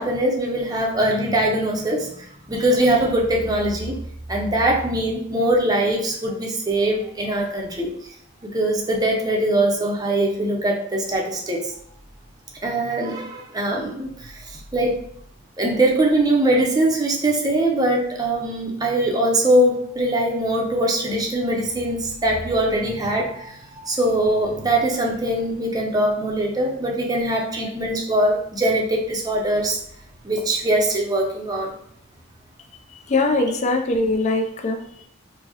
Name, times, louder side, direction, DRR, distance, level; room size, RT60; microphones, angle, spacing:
voice 1, 0.0-4.0 4.3-7.9 8.4-11.7 12.6-15.1 15.6-29.8 30.2-31.8, right 1 dB, 20° right, -1 dB, 0.5 m, -22 dB
voice 2, 32.9-35.0, left 2 dB, 35° left, 4 dB, 0.4 m, -22 dB
4.5 x 2.0 x 2.8 m, 0.66 s
head